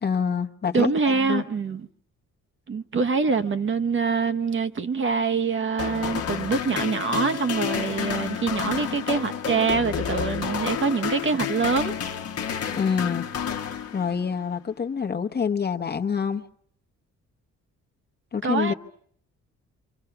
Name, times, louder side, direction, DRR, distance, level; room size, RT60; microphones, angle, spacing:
voice 1, 0.0-1.4 12.7-16.4 18.3-18.7, left 6 dB, 35° left, 1.1 m, -27 dB
voice 2, 0.7-1.9 2.7-11.9 18.4-18.7, right 5 dB, 40° right, 1.0 m, -25 dB
sound 1, 5.8-14.4, left 8 dB, 55° left, 1.2 m, -30 dB
28.5 x 25.5 x 5.9 m
cardioid pair, 90°, 30 cm